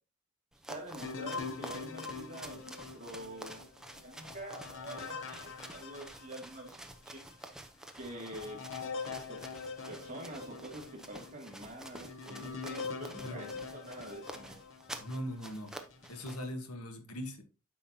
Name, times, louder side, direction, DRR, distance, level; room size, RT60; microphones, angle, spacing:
sound 1, 0.5-16.5, right 1 dB, 5° right, 0.7 m, -50 dB
voice 1, 0.7-3.7 4.0-7.2 7.9-8.6 9.3-14.7, right 1 dB, 35° right, 2.3 m, -46 dB
sound 2, 1.0-6.8 7.3-7.4 8.0-15.2 15.8-16.4, left 4 dB, 60° left, 0.9 m, -44 dB
voice 2, 15.0-15.8 16.1-17.4, equal, 85° left, 1.4 m, -40 dB
9.0 x 5.8 x 2.8 m
head